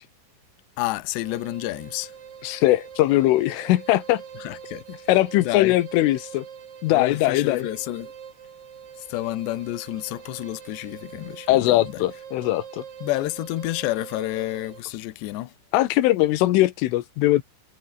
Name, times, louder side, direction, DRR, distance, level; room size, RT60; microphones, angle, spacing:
voice 1, 0.8-2.1 4.4-4.8 5.4-5.8 6.9-8.1 9.0-12.0 13.0-15.5, left 17 dB, 70° left, 3.2 m, -30 dB
sound 1, 1.2-14.9, right 8 dB, 50° right, 3.9 m, -43 dB
voice 2, 2.4-4.2 5.1-6.5 6.8-7.7 11.5-12.8 15.7-17.4, left 16 dB, 90° left, 3.7 m, -20 dB
omnidirectional pair, 5.6 m